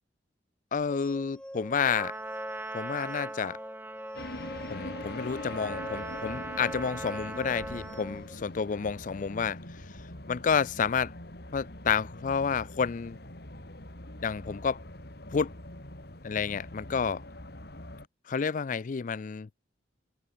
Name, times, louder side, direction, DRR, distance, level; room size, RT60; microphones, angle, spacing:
voice 1, 0.7-2.1 2.7-3.6 4.7-9.6 10.3-11.1 11.5-13.2 14.2-14.8 15.3-15.5 16.2-17.2 18.3-19.5, left 6 dB, 45° left, 0.4 m, -30 dB
sound 1, 0.9-8.4, equal, 5° left, 1.9 m, -44 dB
Trumpet, 1.9-8.2, right 2 dB, 10° right, 1.1 m, -41 dB
sound 2, 4.1-18.1, left 1 dB, 60° left, 4.0 m, -43 dB
head